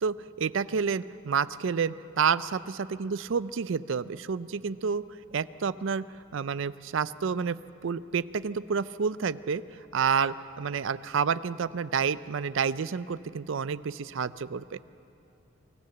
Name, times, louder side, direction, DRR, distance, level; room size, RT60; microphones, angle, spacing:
voice 1, 0.0-5.0 5.3-6.0 6.3-7.6 7.8-9.6 9.9-14.8, right 6 dB, 65° right, 16 dB, 0.4 m, -29 dB
24.5 x 14.5 x 7.8 m, 2.8 s
head